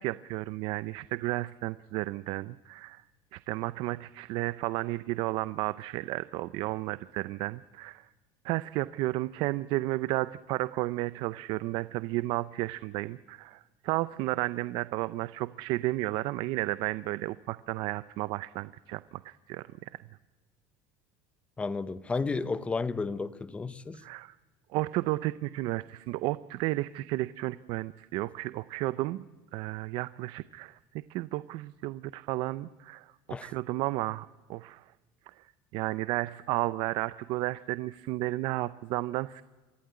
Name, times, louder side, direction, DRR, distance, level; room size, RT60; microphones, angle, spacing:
voice 1, 0.0-3.0 3.3-8.1 8.4-20.0 24.0-24.3 24.7-29.2 29.5-30.8 31.1-34.8 35.4-35.5 35.7-39.4, right 18 dB, 55° right, 0.6 m, -33 dB
voice 2, 21.6-24.0 33.3-33.5, left 4 dB, 10° left, 0.8 m, -32 dB
24.0 x 15.5 x 9.5 m
cardioid pair, 155°, 10 cm